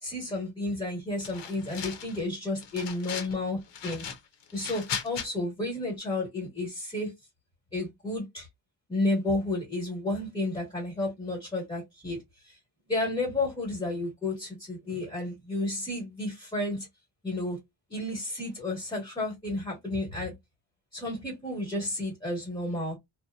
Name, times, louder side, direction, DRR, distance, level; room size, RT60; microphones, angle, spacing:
voice 1, 0.0-4.0 4.5-7.1 7.7-8.5 8.9-12.2 12.4-12.6 12.9-16.9 17.2-17.6 17.9-20.3 20.9-23.0, left 2 dB, 10° left, 1.1 m, -32 dB
sound 1, 1.2-2.2 2.6-3.4 3.7-5.3, left 7 dB, 75° left, 0.8 m, -37 dB
2.7 x 2.1 x 2.3 m
wide cardioid pair, 165°, 44 cm